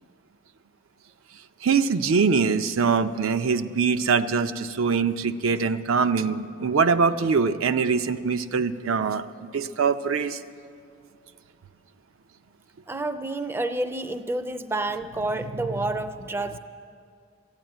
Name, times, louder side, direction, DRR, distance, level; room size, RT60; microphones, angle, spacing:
voice 1, 1.6-9.2 9.5-10.4, right 5 dB, 85° right, 9 dB, 0.5 m, -23 dB
voice 2, 12.9-16.6, right 2 dB, 10° right, 10 dB, 0.3 m, -29 dB
14.0 x 9.0 x 9.1 m, 2.3 s
head